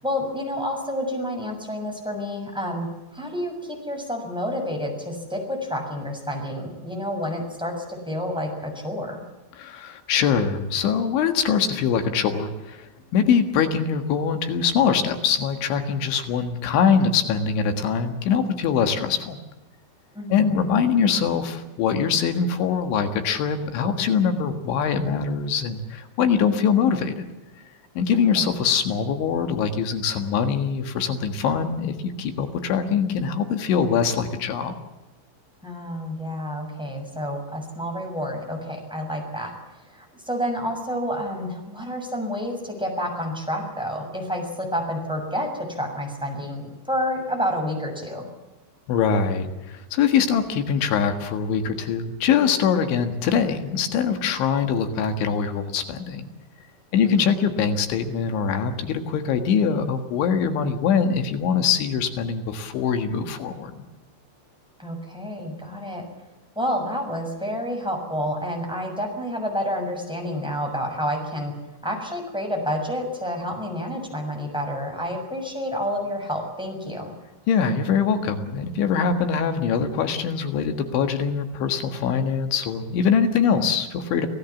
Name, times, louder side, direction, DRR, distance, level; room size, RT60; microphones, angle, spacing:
voice 1, 0.0-2.9 3.1-9.2 20.1-20.6 28.3-28.5 35.6-39.5 39.9-48.3 57.0-57.2 64.8-66.0 66.5-71.5 71.8-77.1, equal, ahead, 2 dB, 6.1 m, -29 dB
voice 2, 9.6-19.4 20.3-27.3 28.0-34.7 48.9-56.3 56.9-63.8 77.5-84.3, left 6 dB, 80° left, 7 dB, 4.0 m, -23 dB
28.5 x 17.0 x 7.2 m, 1.0 s
omnidirectional pair, 5.4 m